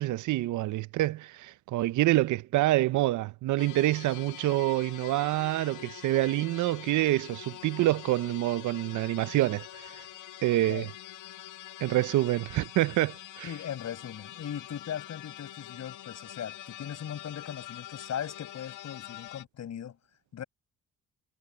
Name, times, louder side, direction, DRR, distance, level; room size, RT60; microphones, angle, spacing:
voice 1, 0.0-10.0 10.4-10.9 11.8-13.5, right 16 dB, 75° right, 0.6 m, -27 dB
sound 1, 3.6-19.4, left 13 dB, 80° left, 1.6 m, -45 dB
voice 2, 13.4-20.0 20.3-20.4, left 9 dB, 60° left, 6.9 m, -39 dB
cardioid pair, 90°, 30 cm